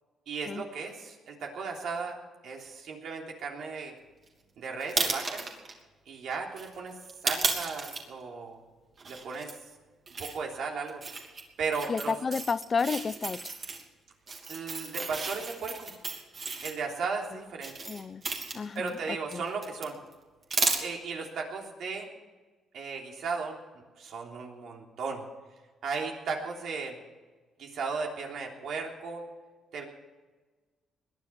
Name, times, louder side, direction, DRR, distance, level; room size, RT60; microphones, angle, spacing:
voice 1, 0.3-3.9 4.6-5.5 6.1-7.0 7.2-8.6 9.0-9.5 10.2-11.0 11.6-12.1 14.5-15.9 16.6-17.7 18.7-20.0 20.8-22.1 22.7-25.2 25.8-27.0 27.6-29.2 29.7-29.8, right 4 dB, 70° right, 3.4 m, -36 dB
sound 1, 4.8-5.7 6.6-8.0 9.0-9.5 10.1-10.4 10.9-11.4 11.7-13.8 14.3-16.7 17.6-19.0 19.3-19.8 20.1-20.2 20.5-20.8, right 4 dB, 45° right, 3.0 m, -33 dB
voice 2, 11.9-13.4 17.9-18.2 18.5-18.9 19.3-19.4, left 5 dB, 40° left, 0.5 m, -30 dB
21.0 x 10.5 x 6.0 m
cardioid pair, 90°, 0 cm